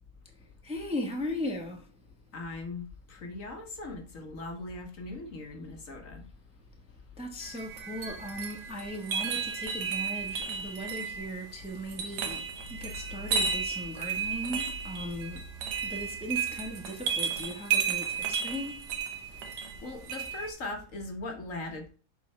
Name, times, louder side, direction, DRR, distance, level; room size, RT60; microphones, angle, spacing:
voice 1, 0.6-1.9 7.2-15.5 15.8-18.9, equal, 5° right, 1.0 m, -38 dB
voice 2, 2.3-6.3 19.5-21.9, left 2 dB, 55° left, 1.5 m, -40 dB
sound 1, 7.4-20.5, right 6 dB, 80° right, 1.5 m, -33 dB
7.1 x 4.9 x 3.2 m
omnidirectional pair, 1.8 m